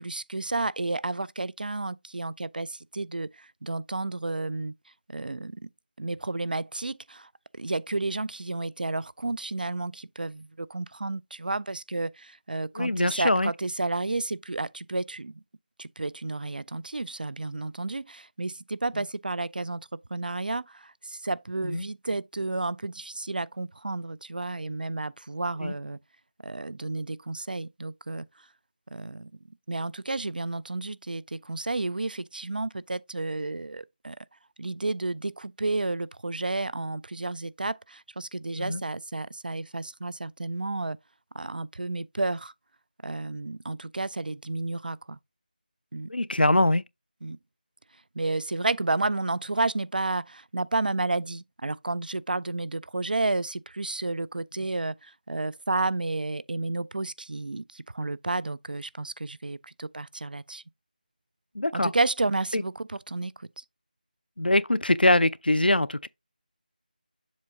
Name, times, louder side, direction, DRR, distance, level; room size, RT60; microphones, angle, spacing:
voice 1, 0.0-4.7 5.1-5.7 6.0-7.3 7.6-15.4 15.8-26.0 26.4-28.3 28.9-29.3 29.7-34.2 34.6-41.0 41.3-42.5 43.0-45.2 45.9-46.1 47.2-47.4 48.2-60.6 61.7-63.6, right 2 dB, 65° right, 0.3 m, -31 dB
voice 2, 12.8-13.5 21.6-21.8 25.6-25.7 38.6-38.8 46.1-46.8 61.5-61.9 62.5-62.6 64.4-66.1, left 1 dB, 85° left, 0.4 m, -23 dB
7.3 x 2.7 x 4.8 m
figure-of-eight pair, 165°, 5 cm